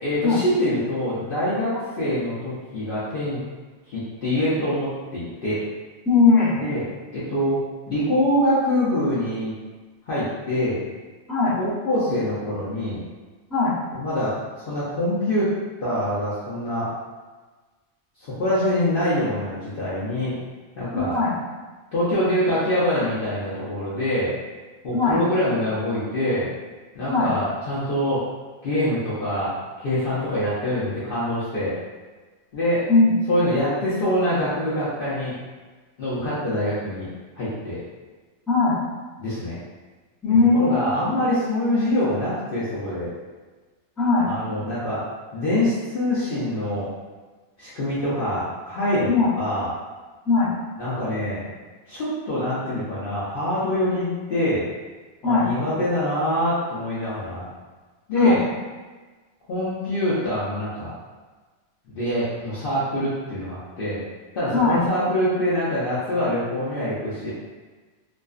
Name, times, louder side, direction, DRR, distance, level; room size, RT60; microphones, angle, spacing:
voice 1, 0.0-3.4 3.9-5.6 6.6-6.8 7.1-7.6 7.9-9.5 10.1-10.8 11.6-13.0 13.9-14.4 14.7-15.5 15.8-16.9 18.2-20.4 20.8-21.1 21.9-24.3 24.8-26.5 26.9-28.3 28.6-31.8 32.5-32.9 33.3-35.3 36.0-37.1 37.4-37.8 39.2-39.6 40.5-43.1 44.3-45.0 45.3-46.9 47.6-49.7 50.8-51.4 51.9-54.6 55.2-57.4 58.1-58.4 59.5-60.9 61.9-64.0 64.3-67.3, left 1 dB, 55° left, -10 dB, 0.6 m, -24 dB
voice 2, 6.1-6.6 11.3-11.6 13.5-13.7 20.9-21.3 24.9-25.2 27.1-27.3 32.9-33.1 38.5-38.8 40.2-40.8 44.0-44.3 49.1-49.3 50.2-50.5 55.2-55.5 58.1-58.4 64.5-64.8, left 4 dB, ahead, -12 dB, 0.5 m, -19 dB
2.4 x 2.2 x 2.3 m, 1.3 s
omnidirectional pair, 1.4 m